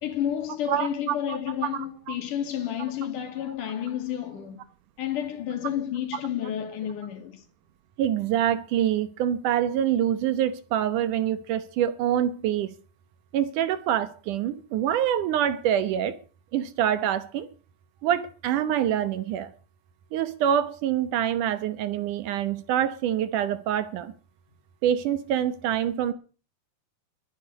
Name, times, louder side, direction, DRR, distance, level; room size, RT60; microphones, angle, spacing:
voice 1, 0.0-4.6 5.0-7.4, left 10 dB, 60° left, 3.6 m, -31 dB
voice 2, 0.7-1.4 2.1-2.2 8.0-12.7 13.3-16.2 16.5-17.5 18.0-19.5 20.1-24.1 24.8-26.1, right 10 dB, 70° right, 2.3 m, -25 dB
22.0 x 10.0 x 4.0 m
omnidirectional pair, 4.3 m